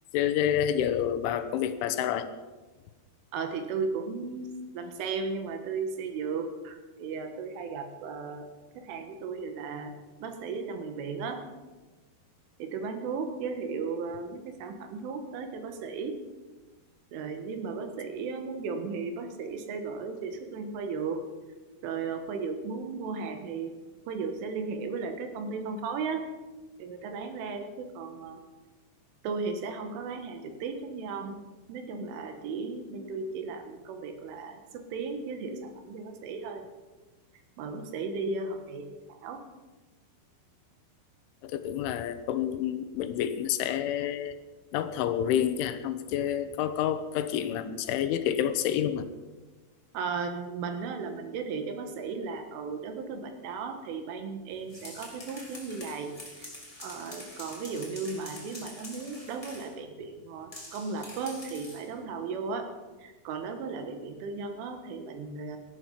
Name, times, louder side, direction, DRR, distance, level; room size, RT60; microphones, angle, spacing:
voice 1, 0.1-2.3 41.4-44.4 44.7-49.1, left 10 dB, 80° left, 10 dB, 3.2 m, -28 dB
voice 2, 3.3-8.5 8.8-9.9 10.2-11.4 12.6-16.2 17.1-21.2 21.8-23.8 24.1-26.3 26.8-28.4 29.2-31.4 31.7-36.7 37.6-39.4 49.9-56.5 56.8-62.7 63.0-65.6, right 4 dB, 80° right, 6 dB, 4.0 m, -35 dB
sound 1, 54.5-59.8 60.5-61.9, left 1 dB, 10° left, 2.7 m, -46 dB
18.0 x 13.5 x 5.8 m, 1.2 s
omnidirectional pair, 5.7 m